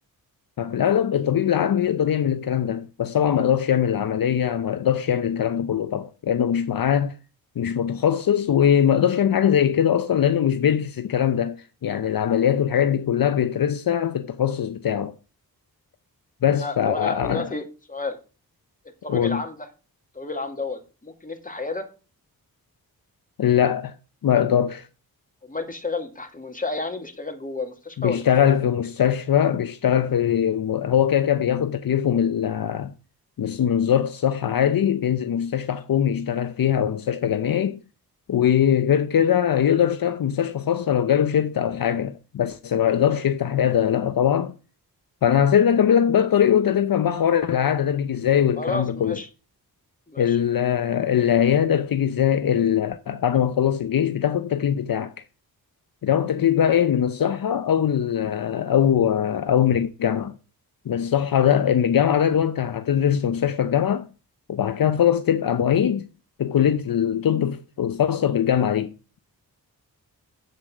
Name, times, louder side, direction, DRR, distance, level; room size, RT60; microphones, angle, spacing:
voice 1, 0.6-7.1 7.6-11.6 11.8-15.1 16.4-17.5 19.1-19.4 23.4-23.9 24.2-24.9 28.0-32.9 33.4-37.8 38.3-44.5 45.2-49.2 50.2-55.1 56.0-60.3 60.9-64.1 64.5-66.0 66.4-68.9, left 9 dB, 65° left, 0.8 m, -21 dB
voice 2, 16.5-18.2 19.0-19.7 20.1-21.9 25.4-28.5 43.1-43.2 48.6-49.3 50.1-50.4, left 3 dB, 20° left, 2.4 m, -31 dB
8.2 x 7.3 x 6.2 m
cardioid pair, 65°, 37 cm